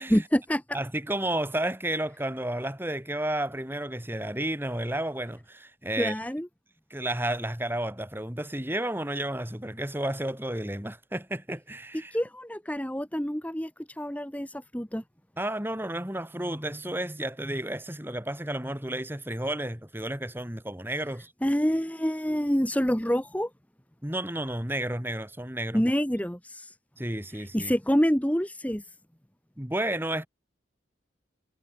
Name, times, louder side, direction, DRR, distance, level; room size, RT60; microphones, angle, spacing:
voice 1, 0.1-0.8 5.9-6.5 12.1-15.0 21.4-23.5 25.7-26.7 27.3-28.8, equal, 10° left, 1.6 m, -27 dB
voice 2, 0.7-6.1 6.9-12.1 15.4-21.3 24.0-25.8 27.0-27.7 29.6-30.3, right 1 dB, 10° right, 2.7 m, -32 dB
head